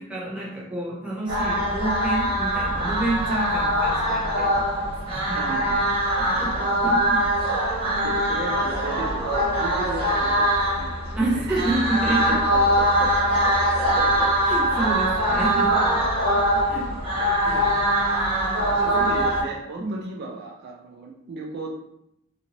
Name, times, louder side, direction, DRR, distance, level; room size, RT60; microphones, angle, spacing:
voice 1, 0.0-5.4 6.3-7.5 11.2-12.4 12.7-12.8 13.4-15.9 16.3-17.9 18.7-19.2 19.8-20.1, right 2 dB, 5° right, -6 dB, 0.8 m, -30 dB
sound 1, 1.3-19.4, equal, 25° right, 1.2 m, -22 dB
voice 2, 5.4-6.3 7.5-11.7 12.1-13.2 15.7-15.9 18.6-21.7, right 3 dB, 50° right, 0 dB, 0.4 m, -36 dB
2.8 x 2.6 x 2.8 m, 0.80 s
head